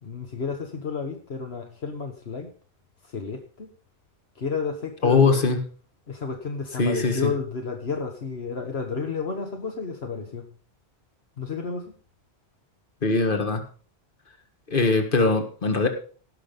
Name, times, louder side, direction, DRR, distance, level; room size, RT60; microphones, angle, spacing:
voice 1, 0.0-2.5 3.0-3.7 4.3-5.4 6.1-10.5 11.4-11.9, left 5 dB, 70° left, 4 dB, 1.6 m, -31 dB
voice 2, 5.0-5.6 6.8-7.2 13.0-13.6 14.7-15.9, left 4 dB, 55° left, 6 dB, 1.9 m, -21 dB
17.0 x 6.2 x 5.3 m, 0.41 s
omnidirectional pair, 1.1 m